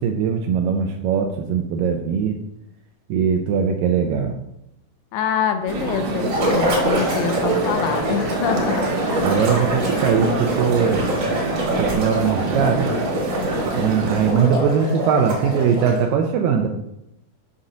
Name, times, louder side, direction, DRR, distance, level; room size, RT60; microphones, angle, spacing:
voice 1, 0.0-2.4 3.1-4.4 9.2-11.1 11.8-13.0 13.7-16.7, right 7 dB, 80° right, 4 dB, 2.2 m, -20 dB
voice 2, 5.1-9.0, left 7 dB, 80° left, 7 dB, 2.2 m, -25 dB
sound 1, 5.7-14.3, right 3 dB, 60° right, 2.3 m, -25 dB
sound 2, 6.2-16.1, equal, 45° right, 1.5 m, -26 dB
7.3 x 5.5 x 3.8 m, 0.81 s
omnidirectional pair, 4.1 m